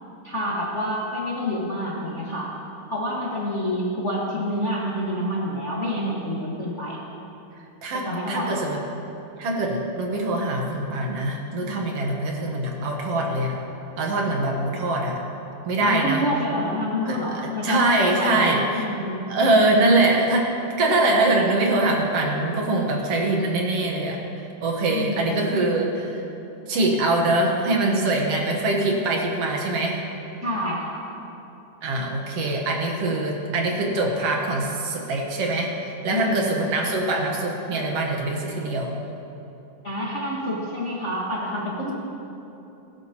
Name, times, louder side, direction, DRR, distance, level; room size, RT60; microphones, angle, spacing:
voice 1, 0.2-2.5 2.9-7.0 7.9-8.5 15.8-19.2 24.9-25.6 30.4-31.0 36.1-36.4 39.8-41.9, equal, 60° left, -6 dB, 0.7 m, -28 dB
voice 2, 7.8-8.8 9.4-13.6 14.0-15.2 15.7-16.2 17.1-18.9 19.3-20.5 20.8-26.3 26.7-30.0 31.8-38.9, right 2 dB, 60° right, 0 dB, 1.8 m, -23 dB
20.0 x 11.5 x 2.9 m, 3.0 s
omnidirectional pair, 4.0 m